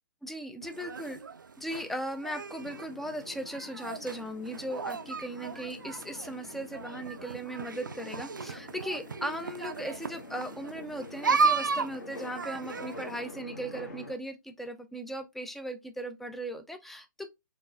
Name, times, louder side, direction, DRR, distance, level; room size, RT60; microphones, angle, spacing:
voice 1, 0.2-1.2 1.6-17.3, right 1 dB, ahead, 0.3 m, -38 dB
sound 1, 0.6-13.2, right 4 dB, 80° right, 0.4 m, -35 dB
sound 2, 2.6-14.2, left 2 dB, 55° left, 1.6 m, -47 dB
4.5 x 3.3 x 2.5 m
figure-of-eight pair, 125°, 10 cm